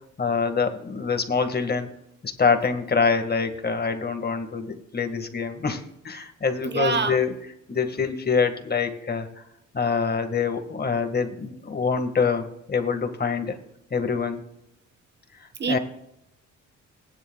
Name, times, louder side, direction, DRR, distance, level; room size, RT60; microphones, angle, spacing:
voice 1, 0.2-1.9 2.2-9.4 9.7-13.6 13.9-14.4 15.7-15.8, left 5 dB, 30° left, 7 dB, 1.8 m, -25 dB
voice 2, 6.6-7.2 15.6-15.8, right 5 dB, 35° right, 10 dB, 1.1 m, -25 dB
19.5 x 10.5 x 2.4 m, 0.81 s
cardioid pair, 90°, 30 cm